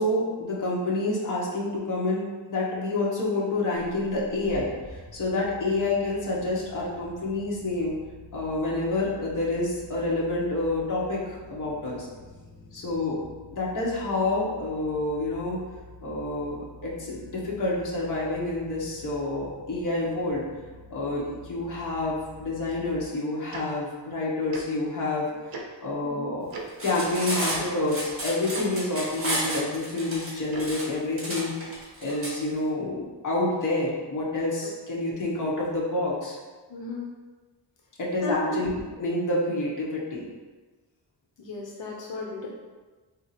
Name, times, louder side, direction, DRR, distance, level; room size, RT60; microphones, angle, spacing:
voice 1, 0.0-8.0 8.3-12.1 12.7-13.2 13.5-15.6 16.0-20.4 20.9-25.3 25.8-26.5 26.8-31.5 32.0-36.4 38.0-38.7 39.0-40.3, left 2 dB, 45° left, -5 dB, 1.0 m, -28 dB
sound 1, 3.7-23.0, left 1 dB, 10° left, 0.5 m, -48 dB
Tick-tock, 23.5-23.6 24.5-24.6 25.5-25.6 26.5-26.6 27.5-27.6 28.5-28.6 29.5-29.6 30.5-30.7, right 3 dB, 55° right, 0.6 m, -36 dB
Cutlery silverware, 26.7-32.3, right 1 dB, 30° right, 1.2 m, -32 dB
voice 2, 36.7-37.1 38.2-38.5 41.4-42.5, left 3 dB, 80° left, -2 dB, 0.7 m, -34 dB
3.6 x 2.8 x 4.1 m, 1.3 s
wide cardioid pair, 180°, 44 cm